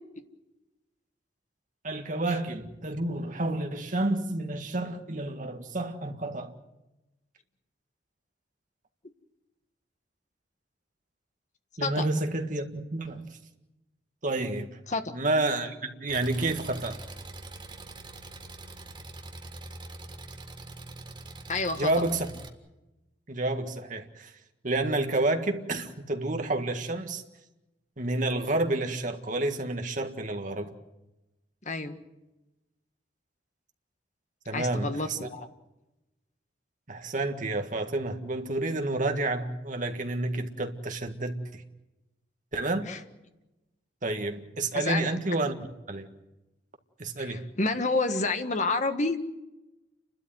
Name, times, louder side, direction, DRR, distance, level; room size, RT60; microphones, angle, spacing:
voice 1, 1.8-6.5 11.8-13.4 14.2-14.8 15.1-17.0 21.8-22.3 23.3-24.3 24.6-27.2 28.0-30.7 34.5-35.3 36.9-41.6 42.5-42.9 44.0-45.6 45.9-46.1 47.0-47.5, right 2 dB, 45° right, 1.9 m, -30 dB
Engine, 16.1-22.5, right 2 dB, 25° right, 1.8 m, -44 dB
voice 2, 21.5-21.9 31.6-32.0 34.5-35.5 42.8-43.0 44.7-45.1 47.2-49.2, left 3 dB, 40° left, 1.6 m, -29 dB
29.5 x 12.5 x 9.4 m
head